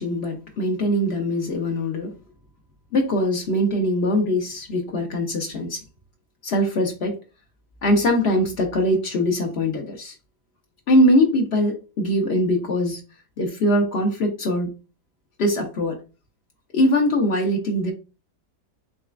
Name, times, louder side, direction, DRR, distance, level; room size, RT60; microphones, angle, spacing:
voice 1, 0.0-2.1 2.9-5.8 6.4-7.2 7.8-10.1 10.9-13.0 13.4-14.7 15.4-16.0 16.7-17.9, equal, 75° left, 0.5 m, -22 dB
4.0 x 3.2 x 2.4 m
omnidirectional pair, 1.9 m